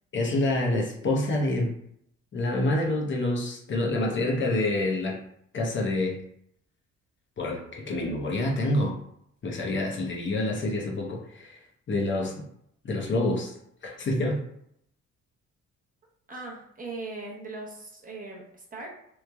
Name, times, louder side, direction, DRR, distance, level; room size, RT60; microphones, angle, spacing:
voice 1, 0.1-1.7 2.3-5.2 5.5-6.2 7.4-9.0 9.4-11.6 11.9-12.5 12.8-13.5 13.8-14.4, left 2 dB, 40° left, -1 dB, 0.6 m, -27 dB
voice 2, 16.3-18.9, right 3 dB, 30° right, -2 dB, 0.6 m, -39 dB
3.0 x 2.0 x 2.2 m, 0.72 s
cardioid pair, 90°, 30 cm